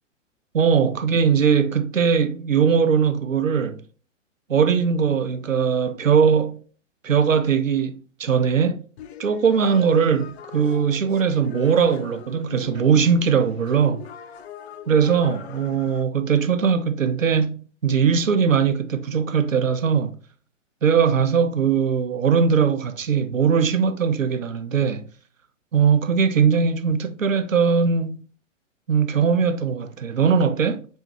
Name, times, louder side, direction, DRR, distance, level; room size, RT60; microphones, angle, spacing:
voice 1, 0.5-3.8 4.5-6.6 7.0-8.9 9.2-14.0 14.9-20.2 20.8-25.0 25.7-28.2 28.9-30.9, right 6 dB, 90° right, 0.6 m, -20 dB
sound 1, 9.0-16.0, left 8 dB, 55° left, 0.5 m, -42 dB
4.3 x 3.5 x 2.8 m
figure-of-eight pair, 115°, 38 cm